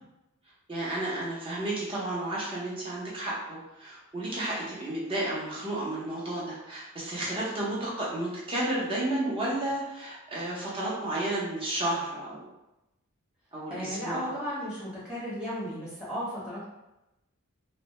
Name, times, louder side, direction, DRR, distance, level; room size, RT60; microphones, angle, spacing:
voice 1, 0.7-12.4 13.5-14.3, right 1 dB, 25° right, -6 dB, 0.6 m, -32 dB
voice 2, 13.7-16.7, equal, 5° right, -9 dB, 0.9 m, -35 dB
2.1 x 2.1 x 2.9 m, 0.95 s
head